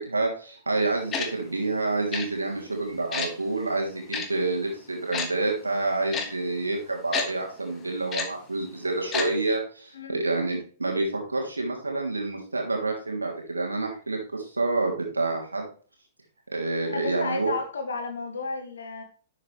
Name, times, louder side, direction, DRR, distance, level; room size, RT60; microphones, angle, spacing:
voice 1, 0.1-15.7 16.5-17.5, right 2 dB, 80° right, 1 dB, 3.0 m, -28 dB
Tick-tock, 1.1-1.3 2.1-2.3 3.1-3.3 4.1-4.3 5.1-5.3 6.1-6.3 7.1-7.3 8.1-8.3 9.1-9.3 9.5-9.6, left 5 dB, 25° left, 2.1 m, -28 dB
voice 2, 16.9-19.0, left 4 dB, 70° left, 4 dB, 2.8 m, -33 dB
11.5 x 7.3 x 3.3 m, 0.41 s
figure-of-eight pair, 105°, 0 cm